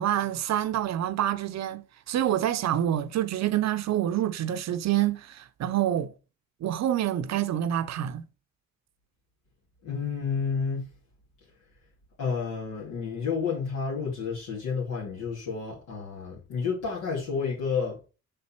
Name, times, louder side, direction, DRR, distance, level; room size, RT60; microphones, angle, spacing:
voice 1, 0.0-6.1 6.6-8.2, right 11 dB, 60° right, 0.7 m, -27 dB
voice 2, 9.8-10.9 12.2-18.0, left 5 dB, 80° left, 2.8 m, -30 dB
6.6 x 4.2 x 4.4 m
cardioid pair, 90°, 30 cm